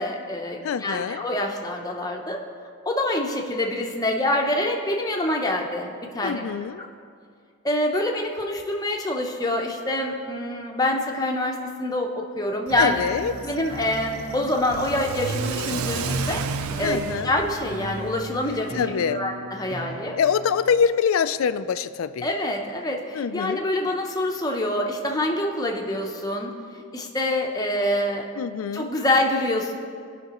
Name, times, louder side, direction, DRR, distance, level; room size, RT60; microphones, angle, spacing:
voice 1, 0.0-2.4 2.8-6.4 6.8-6.9 7.6-13.0 13.4-16.4 16.8-20.2 22.2-28.3 28.7-29.7, left 1 dB, 15° left, 1 dB, 0.7 m, -26 dB
voice 2, 0.6-1.2 6.2-6.8 12.8-13.3 16.8-17.3 18.7-19.2 20.2-22.3 23.1-23.6 28.4-28.9, left 7 dB, 75° left, 13 dB, 0.3 m, -24 dB
sound 1, 12.7-20.7, equal, 60° right, 1.2 m, -38 dB
Car / Accelerating revving vroom, 12.7-18.8, right 5 dB, 85° right, 0.4 m, -33 dB
17.0 x 5.8 x 3.0 m, 2.3 s
head